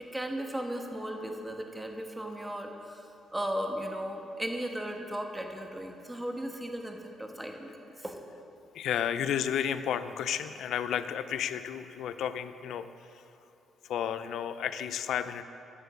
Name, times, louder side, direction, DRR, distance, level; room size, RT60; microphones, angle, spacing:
voice 1, 0.0-7.7 8.0-8.2, right 1 dB, 10° right, 3 dB, 1.3 m, -36 dB
voice 2, 8.7-12.9 13.8-15.4, left 9 dB, 75° left, 12 dB, 0.5 m, -32 dB
10.5 x 6.9 x 7.1 m, 2.8 s
cardioid pair, 90°, 0 cm